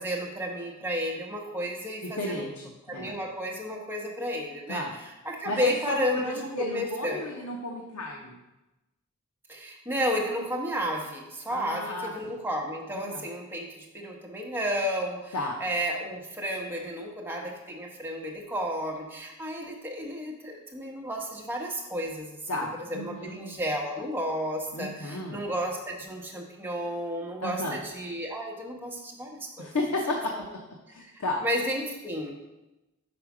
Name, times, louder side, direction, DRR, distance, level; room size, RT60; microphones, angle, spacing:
voice 1, 0.0-2.4 2.9-7.3 9.5-22.6 22.9-29.7 30.3-30.4 31.0-32.4, equal, 10° right, -1 dB, 0.9 m, -32 dB
voice 2, 2.2-2.6 2.9-3.1 4.7-5.0 5.5-8.4 11.5-12.3 12.9-13.3 15.3-15.6 22.5-23.4 24.7-25.4 27.4-27.8 29.6-30.3 30.9-31.4, left 1 dB, 85° left, 0 dB, 0.8 m, -33 dB
5.2 x 4.8 x 6.0 m, 1.0 s
head